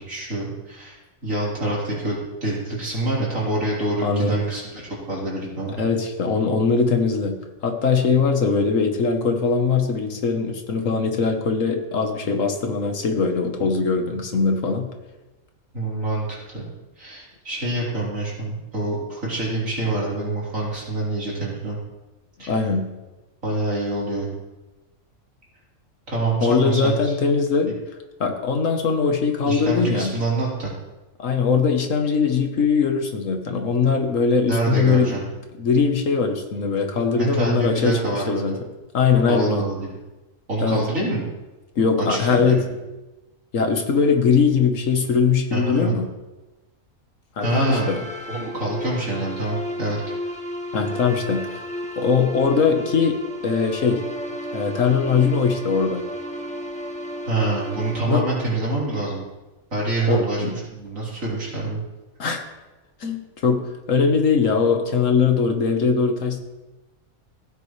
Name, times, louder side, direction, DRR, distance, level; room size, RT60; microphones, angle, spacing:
voice 1, 0.0-4.8 5.1-5.8 15.7-16.7 17.0-21.8 22.4-22.5 23.4-24.3 26.1-27.1 27.7-27.8 29.5-30.7 34.5-35.2 37.1-38.6 39.3-40.0 40.5-41.2 42.0-42.6 45.5-46.0 47.4-47.9 48.3-50.0 57.3-59.2 59.7-61.8, right 2 dB, 70° right, -6 dB, 4.2 m, -26 dB
voice 2, 4.0-4.4 5.8-7.4 7.6-14.9 22.5-22.9 26.4-27.7 28.2-30.1 31.2-35.2 35.6-38.5 38.9-39.6 40.6-40.8 41.8-42.6 43.5-46.1 47.4-48.0 50.7-51.6 52.0-53.2 53.4-54.0 54.5-56.0 58.1-58.2 60.1-60.6 62.2-62.4 63.0-63.6 63.9-66.4, left 5 dB, 65° left, 5 dB, 1.6 m, -21 dB
sound 1, 47.4-59.2, left 1 dB, 5° left, 0.9 m, -33 dB
16.0 x 9.6 x 3.3 m, 1.1 s
omnidirectional pair, 1.4 m